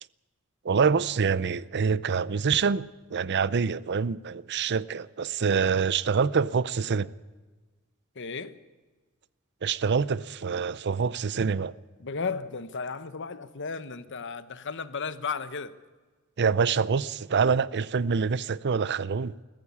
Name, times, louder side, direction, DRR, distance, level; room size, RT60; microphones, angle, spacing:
voice 1, 0.6-7.1 9.6-11.7 16.4-19.3, right 5 dB, 50° right, 0.6 m, -26 dB
voice 2, 8.1-8.6 12.0-15.7, left 5 dB, 60° left, 1.0 m, -34 dB
21.5 x 14.5 x 8.3 m
head